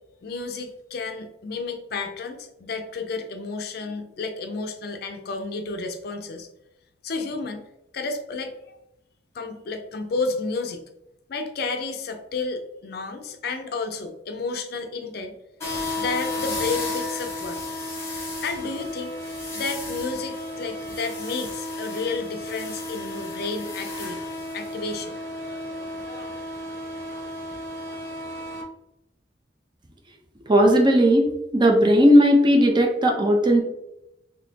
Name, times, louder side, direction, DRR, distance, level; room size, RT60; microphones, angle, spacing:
voice 1, 0.2-6.5 7.0-7.6 7.9-8.6 9.3-10.8 11.3-15.3 16.0-17.6 18.4-19.1 19.5-24.3 24.5-25.1, left 4 dB, 60° left, 7 dB, 0.4 m, -31 dB
sound 1, 15.6-28.6, left 2 dB, 15° left, 1.0 m, -33 dB
voice 2, 30.5-33.6, equal, 25° right, 2 dB, 0.6 m, -17 dB
4.0 x 2.8 x 2.8 m, 0.85 s
head